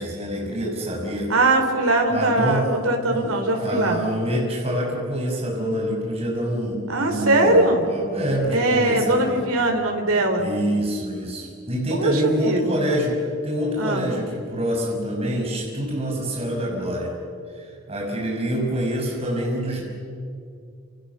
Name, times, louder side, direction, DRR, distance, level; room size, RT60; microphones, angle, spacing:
voice 1, 0.0-1.3 2.1-2.7 3.1-9.4 10.4-13.1 13.4-17.1 17.5-19.8, equal, 30° right, -2 dB, 6.0 m, -26 dB
voice 2, 1.3-4.0 6.9-7.8 8.5-10.5 12.0-12.8 13.8-14.1, right 2 dB, 90° right, 3 dB, 3.9 m, -21 dB
28.5 x 28.0 x 7.0 m, 2.4 s
head